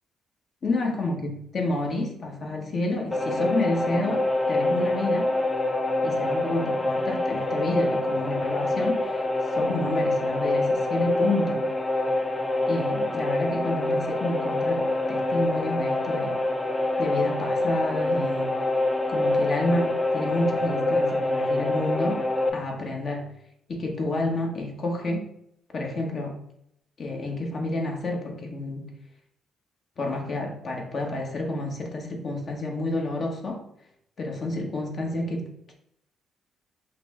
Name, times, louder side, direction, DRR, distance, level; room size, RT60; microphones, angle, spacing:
voice 1, 0.6-5.3 6.0-9.2 9.5-11.6 12.7-16.4 17.0-18.5 19.1-22.3 22.5-23.3 23.7-25.2 25.7-26.4 27.0-28.9 30.0-33.7 34.2-35.7, left 2 dB, 50° left, 1.1 m, -29 dB
sound 1, 3.1-22.5, left 1 dB, 20° left, 0.6 m, -25 dB
5.8 x 2.1 x 3.6 m
cardioid pair, 90°, 0 cm